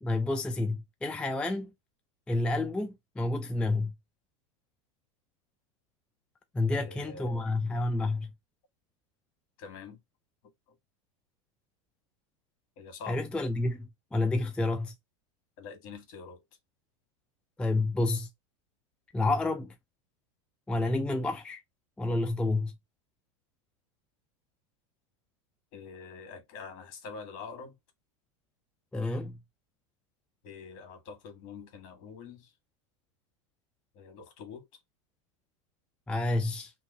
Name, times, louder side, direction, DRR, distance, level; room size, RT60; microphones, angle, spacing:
voice 1, 0.0-1.7 2.3-3.9 6.5-8.3 13.1-14.9 17.6-18.3 19.1-19.7 20.7-21.6 22.0-22.7 28.9-29.4 36.1-36.7, left 2 dB, 5° left, 0.4 m, -29 dB
voice 2, 6.7-7.5 9.6-10.0 10.4-10.8 12.8-13.2 15.6-16.4 25.7-27.7 30.4-32.5 33.9-34.7, left 5 dB, 55° left, 1.5 m, -45 dB
2.8 x 2.5 x 3.8 m
supercardioid pair, 125°, 17 cm